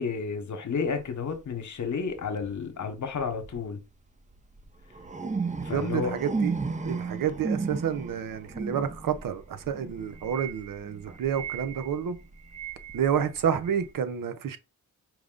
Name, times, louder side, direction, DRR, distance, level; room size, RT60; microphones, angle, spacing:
voice 1, 0.0-3.8 5.6-6.1, left 5 dB, 60° left, 1.0 m, -31 dB
sound 1, 0.8-1.0 2.1-2.5 3.2-3.6 4.3-13.9, right 4 dB, 20° right, 0.6 m, -35 dB
voice 2, 5.7-6.5 6.8-12.2 12.9-14.6, right 8 dB, 75° right, 0.7 m, -29 dB
4.7 x 2.1 x 3.7 m
cardioid pair, 60°, 34 cm